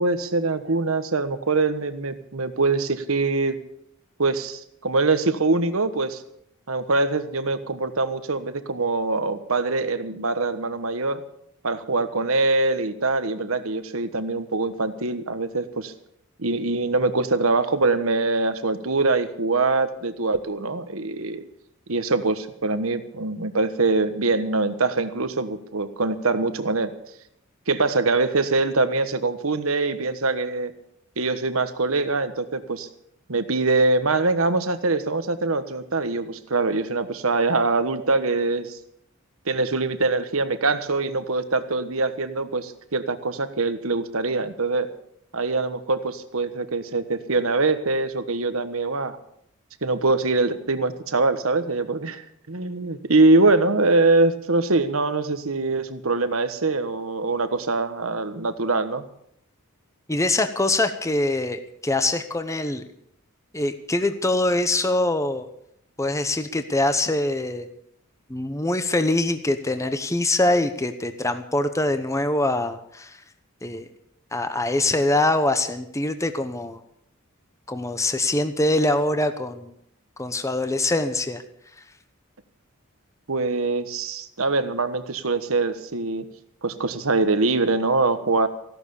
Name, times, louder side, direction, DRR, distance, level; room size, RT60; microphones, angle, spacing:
voice 1, 0.0-3.5 4.2-6.2 6.7-11.2 11.6-15.9 16.4-21.4 21.9-26.9 27.7-30.7 31.2-32.9 33.3-38.8 39.5-44.9 45.3-49.2 49.8-59.0 83.3-86.2 86.6-88.5, right 3 dB, 70° right, 10 dB, 1.3 m, -23 dB
voice 2, 60.1-62.8 63.5-65.5 66.0-67.7 68.3-73.2 73.6-73.8 74.3-76.8 77.7-79.7 80.2-81.4, left 2 dB, 15° left, 9 dB, 0.9 m, -23 dB
16.0 x 12.0 x 7.0 m, 0.72 s
head